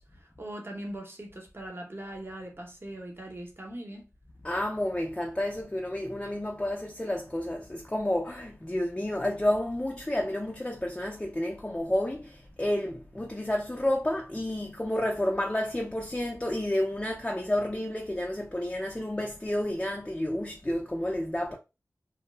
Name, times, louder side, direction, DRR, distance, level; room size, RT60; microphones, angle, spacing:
voice 1, 0.0-4.1, right 1 dB, 40° right, 0.9 m, -41 dB
voice 2, 4.4-21.6, left 1 dB, 15° left, 0.4 m, -30 dB
2.2 x 2.1 x 3.0 m
cardioid pair, 45°, 6 cm